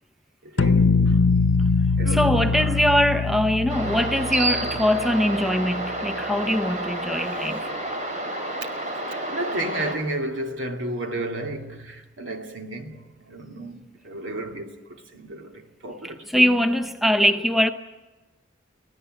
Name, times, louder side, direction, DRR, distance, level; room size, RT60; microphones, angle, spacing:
voice 1, 0.4-1.2 2.0-3.0 4.6-4.7 6.3-7.7 8.8-16.3, right 1 dB, 85° right, 2.5 m, -33 dB
sound 1, 0.6-5.5, left 4 dB, 85° left, 0.8 m, -22 dB
voice 2, 2.1-7.6 16.3-17.7, equal, ahead, 0.7 m, -22 dB
sound 2, 3.7-10.0, right 1 dB, 40° right, 3.7 m, -30 dB
25.0 x 17.5 x 7.7 m
head